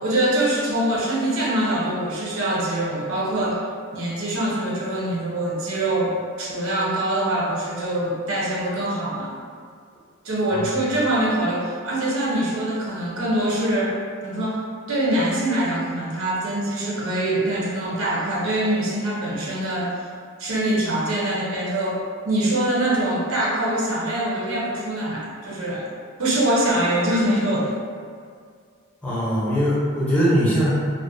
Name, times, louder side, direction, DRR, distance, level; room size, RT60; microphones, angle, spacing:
voice 1, 0.0-3.6 3.9-9.3 10.2-14.0 14.2-20.0 20.4-25.9 26.2-27.7, right 1 dB, 85° right, -5 dB, 0.6 m, -24 dB
voice 2, 29.0-30.7, equal, 5° left, -9 dB, 0.6 m, -21 dB
2.4 x 2.1 x 2.6 m, 2.1 s
head